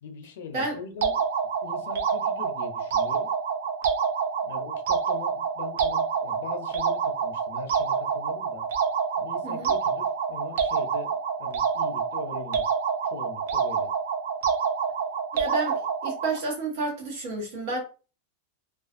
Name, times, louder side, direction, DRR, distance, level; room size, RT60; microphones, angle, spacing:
voice 1, 0.0-1.2 1.6-3.3 4.4-8.6 9.2-12.7 13.1-13.9, left 6 dB, 70° left, 0.5 m, -41 dB
sound 1, 1.0-16.4, right 6 dB, 85° right, 0.5 m, -27 dB
voice 2, 15.3-17.8, right 3 dB, 55° right, 1.1 m, -30 dB
2.4 x 2.3 x 2.4 m
supercardioid pair, 175°, 0 cm